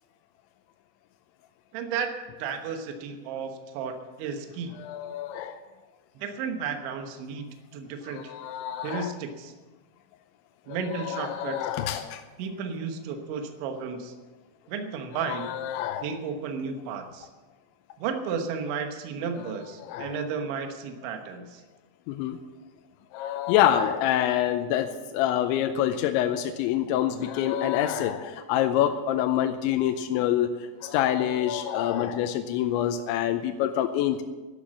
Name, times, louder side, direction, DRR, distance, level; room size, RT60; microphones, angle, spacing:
voice 1, 1.7-2.1 2.4-4.8 6.2-7.5 7.7-8.3 8.8-9.5 10.7-11.6 12.4-14.1 14.7-15.5 16.0-17.3 18.0-21.6, right 6 dB, 80° right, 5 dB, 3.5 m, -33 dB
voice 2, 4.8-5.6 8.1-9.1 10.9-12.2 15.3-16.1 19.8-20.2 22.1-22.4 23.1-30.5 30.8-34.2, left 11 dB, 85° left, 7 dB, 3.0 m, -26 dB
11.5 x 11.5 x 7.4 m, 1.2 s
omnidirectional pair, 5.4 m